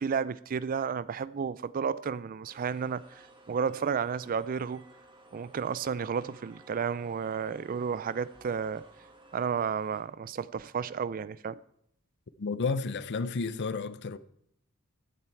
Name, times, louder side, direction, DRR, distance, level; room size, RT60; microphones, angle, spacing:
voice 1, 0.0-3.0 3.5-4.8 5.3-8.8 9.3-11.6, right 6 dB, 40° right, 0.4 m, -32 dB
sound 1, 2.4-10.0, right 2 dB, 20° right, 1.8 m, -56 dB
voice 2, 12.4-14.2, left 4 dB, 55° left, 0.6 m, -31 dB
15.0 x 9.2 x 4.5 m
head